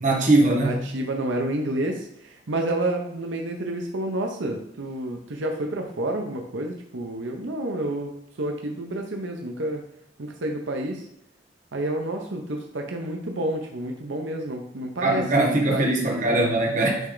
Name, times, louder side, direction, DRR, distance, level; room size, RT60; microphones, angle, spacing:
voice 1, 0.0-0.8 15.0-17.1, right 2 dB, 45° right, 0 dB, 1.3 m, -21 dB
voice 2, 0.6-9.8 10.2-11.0 11.7-16.3, right 1 dB, 85° right, 2 dB, 0.8 m, -29 dB
9.1 x 3.3 x 3.9 m, 0.76 s
head